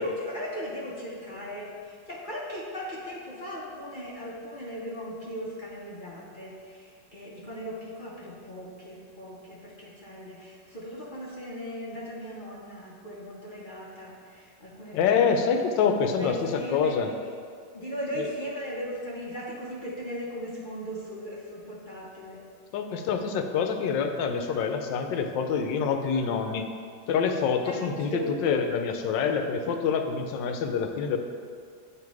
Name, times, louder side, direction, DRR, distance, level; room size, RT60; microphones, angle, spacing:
voice 1, 0.0-17.0 17.7-22.4 27.6-28.3, equal, 40° left, -6 dB, 0.7 m, -38 dB
voice 2, 14.9-17.1 18.2-18.3 22.7-26.7 27.1-31.2, left 6 dB, 80° left, 6 dB, 1.3 m, -26 dB
9.0 x 3.3 x 4.6 m, 2.1 s
omnidirectional pair, 2.0 m